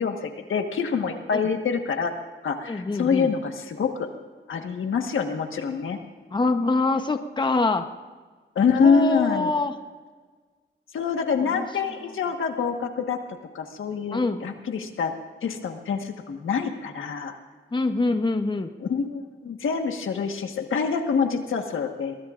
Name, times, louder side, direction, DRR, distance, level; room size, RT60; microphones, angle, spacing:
voice 1, 0.0-2.1 2.4-4.1 4.5-6.0 8.5-9.6 10.9-13.2 13.5-15.1 15.4-17.4 18.8-22.2, left 5 dB, 90° left, 5 dB, 1.4 m, -26 dB
voice 2, 2.7-3.3 6.3-7.9 8.8-9.7 11.4-11.6 14.1-14.4 17.7-18.7, left 3 dB, 25° left, 7 dB, 0.9 m, -25 dB
21.5 x 21.0 x 2.5 m, 1.5 s
wide cardioid pair, 110°, 20 cm